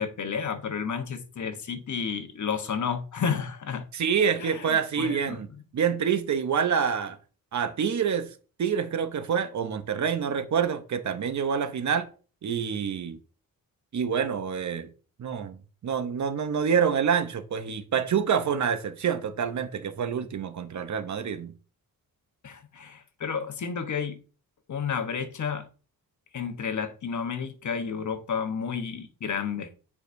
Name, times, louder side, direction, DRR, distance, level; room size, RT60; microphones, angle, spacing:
voice 1, 0.0-3.8 4.4-5.4 22.4-24.2 24.7-25.6 26.3-29.7, left 6 dB, 55° left, 1.0 m, -31 dB
voice 2, 3.9-7.2 7.5-8.3 8.6-12.1 12.4-13.2 13.9-14.9 15.2-21.5, right 7 dB, 55° right, 0.7 m, -27 dB
9.0 x 4.8 x 2.6 m
wide cardioid pair, 130°, 35 cm